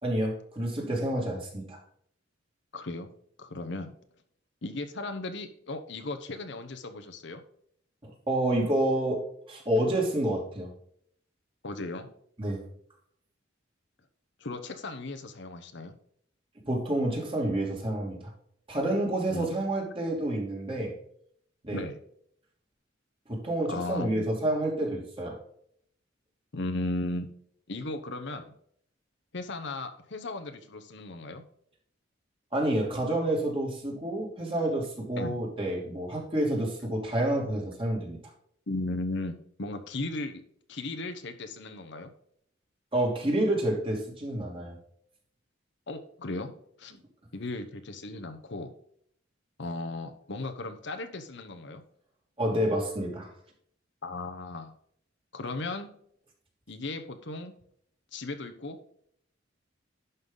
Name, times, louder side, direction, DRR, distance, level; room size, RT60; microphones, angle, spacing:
voice 1, 0.0-1.8 8.3-10.7 12.4-12.6 16.6-18.3 18.7-21.0 21.6-21.8 23.3-25.4 32.5-38.2 42.9-44.8 52.4-53.3, right 1 dB, 30° right, -1 dB, 2.7 m, -29 dB
voice 2, 2.7-3.1 3.4-3.9 4.6-7.4 11.6-12.1 14.4-15.9 19.3-19.5 21.7-22.0 23.7-24.2 26.5-27.3 27.7-28.5 29.3-31.4 35.2-35.3 38.7-40.4 40.7-42.1 45.9-46.5 46.8-47.0 47.3-48.7 49.6-51.8 54.0-54.7 55.3-55.9 56.7-57.5 58.1-58.9, left 2 dB, 65° left, 7 dB, 1.0 m, -36 dB
11.0 x 5.8 x 3.9 m, 0.66 s
head